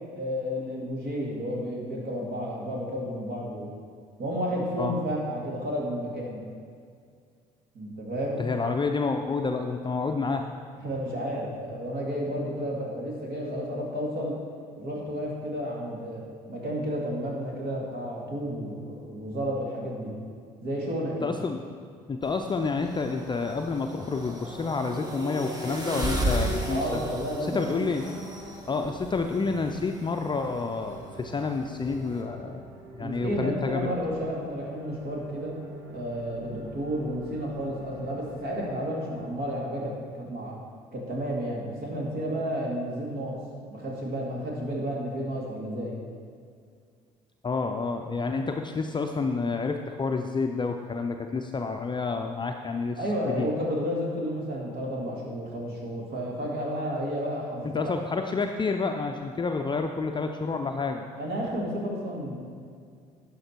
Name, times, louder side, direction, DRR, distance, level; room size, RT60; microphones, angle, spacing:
voice 1, 0.1-3.7 4.2-6.4 7.7-8.4 10.8-14.4 14.8-20.1 20.6-21.3 26.7-27.8 33.0-35.6 35.9-40.6 40.9-43.4 43.7-46.0 53.0-57.8 61.2-62.4, equal, 55° right, -2 dB, 2.4 m, -31 dB
voice 2, 8.4-10.5 21.2-21.6 22.1-27.0 27.4-28.0 28.7-32.6 32.9-33.9 47.4-53.0 53.2-53.5 57.7-61.1, left 4 dB, 25° left, 4 dB, 0.5 m, -29 dB
sound 1, 22.2-32.2, right 1 dB, 20° right, 1.7 m, -35 dB
sound 2, 28.3-39.3, right 1 dB, 80° right, 1.6 m, -47 dB
11.5 x 5.1 x 4.5 m, 2.2 s
hypercardioid pair, 55°, 19 cm